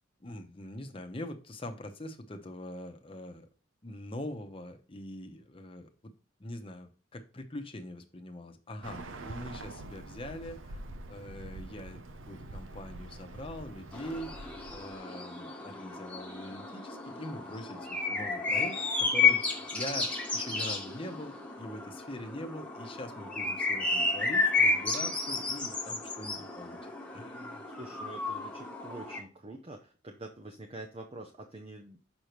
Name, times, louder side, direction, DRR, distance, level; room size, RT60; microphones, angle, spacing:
voice 1, 0.2-3.5 3.8-6.1 6.4-10.8 11.1-26.8 27.1-27.6, left 1 dB, 30° left, 5 dB, 0.9 m, -43 dB
Bird, 8.8-15.0, right 2 dB, 85° right, 0.7 m, -45 dB
sound 1, 13.9-29.2, left 4 dB, 5° left, 1.2 m, -32 dB
voice 2, 27.7-32.0, right 2 dB, 30° right, 2 dB, 0.7 m, -46 dB
6.7 x 5.5 x 3.0 m, 0.35 s
head